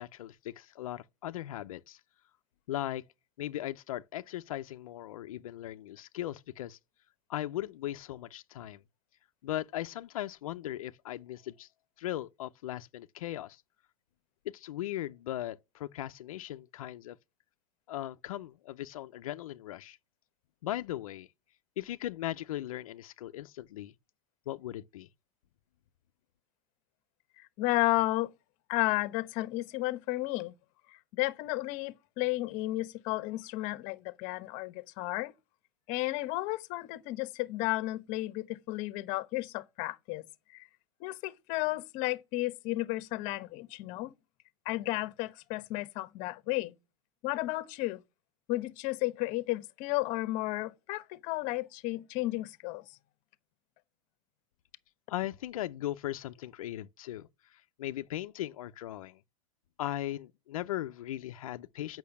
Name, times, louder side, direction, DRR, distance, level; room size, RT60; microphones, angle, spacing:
voice 1, 0.0-2.0 2.7-3.0 3.4-6.8 7.3-8.8 9.4-11.7 12.0-13.6 14.5-17.2 17.9-20.0 20.6-21.3 21.8-23.9 24.5-25.1 55.1-59.2 59.8-62.0, left 13 dB, 85° left, 0.7 m, -38 dB
voice 2, 27.4-28.3 28.7-30.5 30.9-35.3 35.9-40.2 40.5-40.7 41.0-44.1 44.6-46.7 47.2-48.0 48.5-52.8, left 19 dB, 50° left, 1.0 m, -33 dB
8.5 x 6.2 x 7.1 m
supercardioid pair, 135°, 17 cm